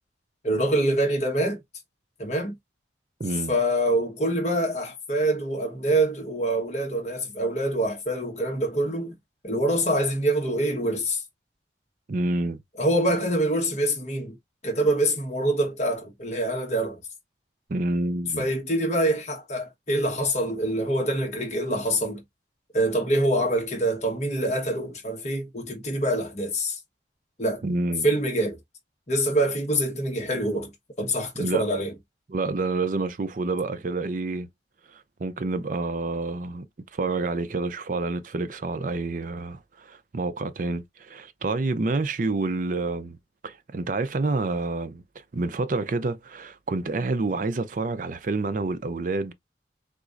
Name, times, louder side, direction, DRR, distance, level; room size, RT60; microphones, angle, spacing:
voice 1, 0.4-1.6 2.2-2.5 3.5-9.2 9.4-11.2 12.8-14.3 14.6-17.0 18.4-22.2 22.7-26.8 27.4-27.6 28.0-28.6 29.1-30.7 31.0-31.9, right 1 dB, 40° left, 1.3 m, -25 dB
voice 2, 3.2-3.6 12.1-12.6 17.7-18.5 27.6-28.1 31.4-31.7 32.3-34.5 34.9-36.6 36.9-43.2 43.4-45.0 45.3-49.3, right 3 dB, 45° right, 0.5 m, -28 dB
3.7 x 2.9 x 2.5 m
head